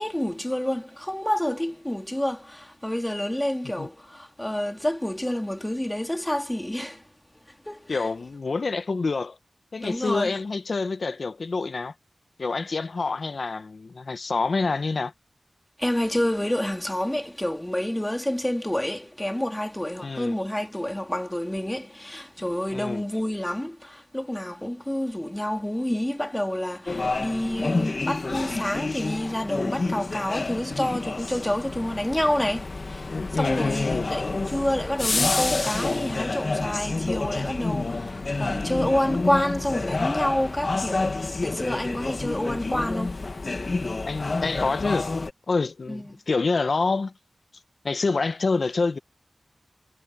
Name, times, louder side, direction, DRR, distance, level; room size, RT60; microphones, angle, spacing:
voice 1, 0.0-7.0 7.6-8.1 9.8-10.4 15.8-43.2 45.9-46.0, left 1 dB, 10° left, 2.8 m, -28 dB
voice 2, 7.9-9.4 9.7-11.9 12.4-15.1 20.0-20.4 22.7-23.0 33.1-34.1 44.0-45.1 45.5-47.1 47.8-49.0, left 4 dB, 70° left, 0.9 m, -27 dB
sound 1, 26.9-45.3, left 3 dB, 50° left, 1.6 m, -29 dB
wide cardioid pair, 95°, 0 cm